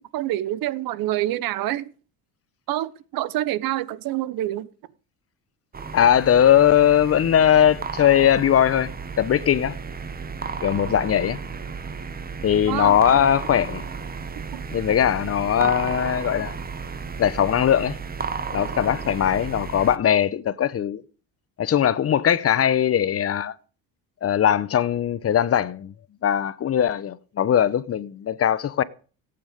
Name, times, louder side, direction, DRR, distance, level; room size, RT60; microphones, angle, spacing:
voice 1, 0.1-1.9 2.7-4.7 12.7-13.0 14.5-14.6 15.6-15.9, right 14 dB, 65° right, 1.0 m, -27 dB
sound 1, 5.7-20.0, right 5 dB, 25° right, 1.3 m, -33 dB
voice 2, 5.9-8.9 9.2-9.8 10.6-11.4 12.4-13.8 14.7-16.6 17.2-18.0 18.5-21.0 21.6-23.5 24.2-25.9 26.2-28.8, left 9 dB, 40° left, 0.9 m, -20 dB
18.0 x 8.9 x 5.2 m
cardioid pair, 105°, 38 cm